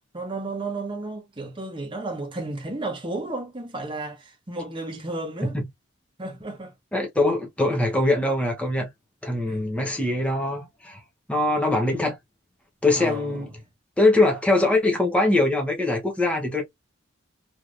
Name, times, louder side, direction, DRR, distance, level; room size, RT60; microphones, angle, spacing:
voice 1, 0.1-5.6 6.2-6.7 9.5-9.6 13.0-13.5, right 2 dB, 25° right, 0.9 m, -33 dB
voice 2, 6.9-8.9 9.2-11.0 11.3-12.2 12.8-13.6 14.0-16.6, left 2 dB, 5° left, 0.8 m, -22 dB
3.1 x 2.7 x 2.5 m
head